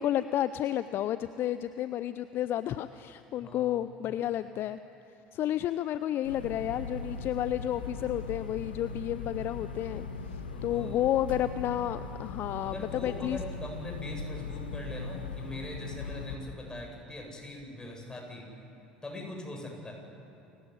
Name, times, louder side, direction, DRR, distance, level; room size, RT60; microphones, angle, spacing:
voice 1, 0.0-4.8 5.3-10.1 10.6-13.4, left 12 dB, 45° left, 13 dB, 0.6 m, -31 dB
sound 1, 6.2-16.4, left 3 dB, 80° left, 1.8 m, -39 dB
voice 2, 10.5-11.0 12.6-18.5 19.0-19.9, left 2 dB, 15° left, 0 dB, 7.9 m, -42 dB
29.0 x 15.5 x 9.7 m, 2.9 s
figure-of-eight pair, 65°, 5 cm